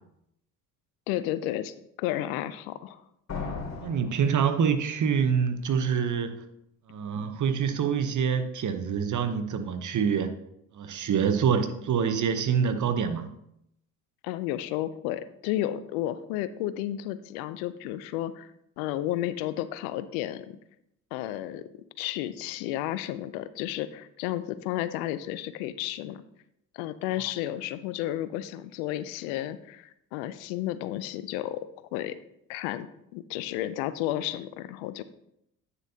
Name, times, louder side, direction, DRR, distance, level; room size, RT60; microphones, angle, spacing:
voice 1, 1.1-3.0 14.2-18.5 18.8-20.6 21.1-21.6 22.0-26.2 26.7-31.7 31.9-32.2 32.5-35.0, left 13 dB, 80° left, 15 dB, 0.6 m, -32 dB
sound 1, 3.3-5.1, left 4 dB, 40° left, 2.7 m, -37 dB
voice 2, 3.8-6.4 6.9-10.3 10.7-13.3, right 7 dB, 45° right, 9 dB, 1.0 m, -26 dB
9.2 x 6.7 x 2.8 m, 0.78 s
hypercardioid pair, 60°, 41 cm